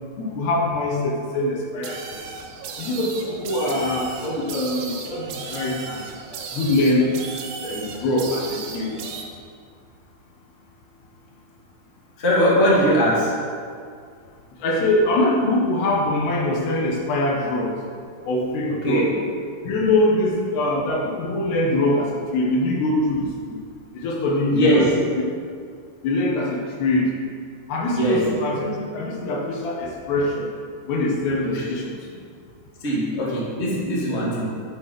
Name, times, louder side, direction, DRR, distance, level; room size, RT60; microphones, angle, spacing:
voice 1, 0.2-2.2 2.8-6.0 6.5-7.1 7.6-8.9 14.6-17.8 18.3-19.1 19.6-23.6 23.9-24.9 26.0-27.1 27.7-30.5 30.9-32.0, left 1 dB, 70° left, -1 dB, 3.4 m, -23 dB
sound 1, 1.8-9.2, right 5 dB, 90° right, 3.7 m, -35 dB
voice 2, 12.2-13.4 18.7-19.2 24.5-25.0 27.9-28.3 31.5-31.6 32.8-34.5, equal, 20° left, -5 dB, 1.9 m, -21 dB
11.5 x 8.6 x 5.9 m, 2.2 s
omnidirectional pair, 5.3 m